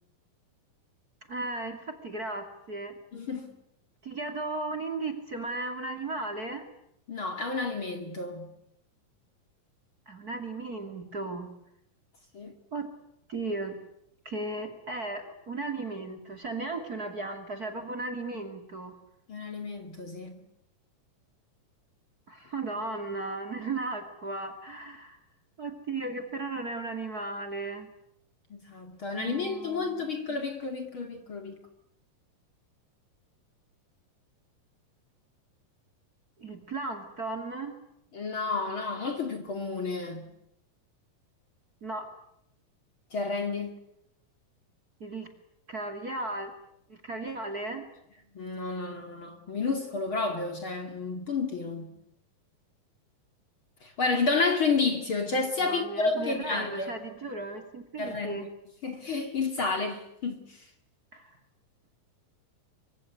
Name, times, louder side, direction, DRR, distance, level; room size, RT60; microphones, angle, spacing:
voice 1, 1.3-2.9 4.0-6.6 10.1-11.5 12.7-12.9 13.3-13.8 14.2-18.9 22.3-25.2 25.6-27.9 29.1-30.1 36.4-37.8 41.8-42.0 45.0-45.3 45.7-46.5 46.9-47.8 55.6-58.5 61.1-61.3, right 2 dB, 30° right, 2.6 m, -35 dB
voice 2, 3.1-3.5 7.1-8.5 12.3-12.5 19.3-20.4 28.5-31.6 38.1-40.2 43.1-43.7 48.3-51.9 53.8-56.9 58.0-58.5 58.8-60.4, left 4 dB, 40° left, 2.8 m, -30 dB
25.0 x 24.5 x 9.5 m
omnidirectional pair, 4.1 m